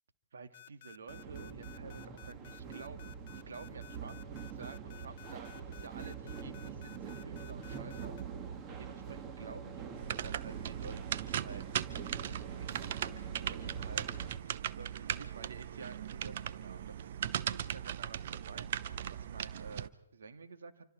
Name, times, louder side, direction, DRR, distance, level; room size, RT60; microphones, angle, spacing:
voice 1, 0.3-8.1 8.5-9.8 10.2-11.6 12.1-20.9, right 4 dB, 65° right, 8 dB, 2.2 m, -51 dB
sound 1, 0.5-8.2, left 15 dB, 45° left, 0.8 m, -54 dB
sound 2, 1.1-14.4, right 7 dB, 25° right, 1.8 m, -44 dB
sound 3, 10.0-19.9, right 10 dB, 50° right, 0.7 m, -38 dB
27.0 x 25.0 x 4.6 m, 0.81 s
figure-of-eight pair, 130°, 0 cm